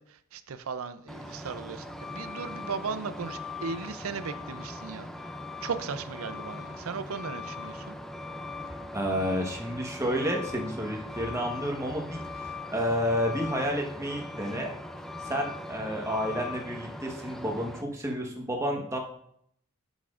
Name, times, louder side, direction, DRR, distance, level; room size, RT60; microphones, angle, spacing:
voice 1, 0.0-5.1 5.6-7.9, right 5 dB, 75° right, 0.5 m, -37 dB
Truck, 1.1-17.8, left 2 dB, ahead, 0.4 m, -40 dB
voice 2, 8.9-14.7 15.2-19.0, equal, 15° right, 1.1 m, -30 dB
10.0 x 7.2 x 2.5 m
head